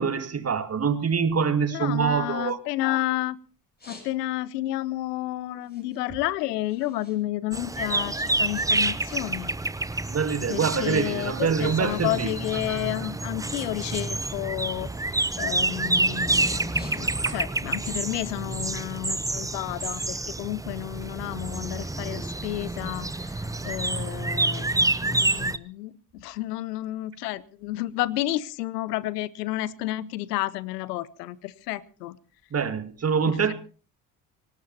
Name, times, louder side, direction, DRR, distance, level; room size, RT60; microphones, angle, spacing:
voice 1, 0.0-2.6 10.1-13.1 17.2-17.3 23.6-23.8 32.5-33.5, right 6 dB, 30° right, 2.1 m, -25 dB
voice 2, 1.7-3.4 3.9-9.5 10.5-14.9 15.4-23.1 23.6-32.2 33.3-33.5, left 16 dB, 70° left, 0.9 m, -31 dB
sound 1, 2.6-3.2 3.5-4.6 5.0-7.2 7.5-9.5 9.8-10.2 10.8-10.9 11.2-11.8 12.0-13.3 13.7-16.1 16.5-17.5 17.9-21.0, left 2 dB, 20° left, 7.5 m, -53 dB
sound 2, 7.5-25.6, right 2 dB, 5° right, 0.8 m, -28 dB
25.0 x 18.5 x 2.8 m
figure-of-eight pair, 55°, 49 cm